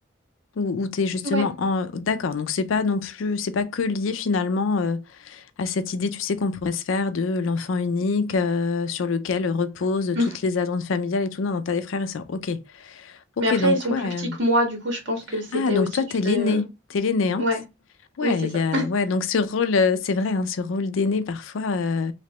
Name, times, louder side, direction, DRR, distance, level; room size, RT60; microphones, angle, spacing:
voice 1, 0.6-14.4 15.5-17.5 18.2-22.1, left 4 dB, 90° left, 0.4 m, -25 dB
voice 2, 13.4-15.9 16.2-16.7 17.4-17.6 18.2-18.3 18.7-18.8, equal, 65° right, 1.5 m, -24 dB
3.2 x 2.9 x 2.8 m
head